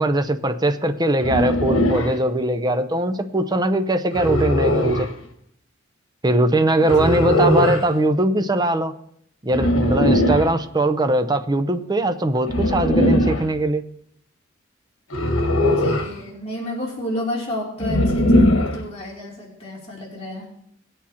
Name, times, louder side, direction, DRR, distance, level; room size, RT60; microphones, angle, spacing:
voice 1, 0.0-5.1 6.2-8.9 9.4-13.8, right 1 dB, 20° right, 8 dB, 0.6 m, -21 dB
sound 1, 1.2-2.2 4.1-5.1 6.9-7.9 9.5-10.5 12.5-13.5 15.1-16.1 17.8-18.8, left 1 dB, 85° left, 1.3 m, -19 dB
voice 2, 15.6-20.5, left 1 dB, 30° left, -4 dB, 2.9 m, -31 dB
19.0 x 8.5 x 2.9 m, 0.70 s
head